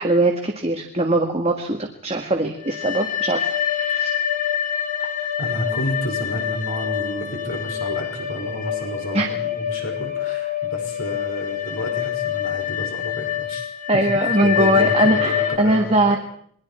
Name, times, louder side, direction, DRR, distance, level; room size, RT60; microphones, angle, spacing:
voice 1, 0.0-4.2 9.1-9.3 13.9-16.2, right 1 dB, 25° right, 3 dB, 1.7 m, -21 dB
sound 1, 2.5-15.6, left 10 dB, 35° left, 2.2 m, -26 dB
voice 2, 5.0-16.2, equal, 65° left, 1 dB, 5.7 m, -31 dB
28.0 x 23.0 x 4.4 m, 0.64 s
head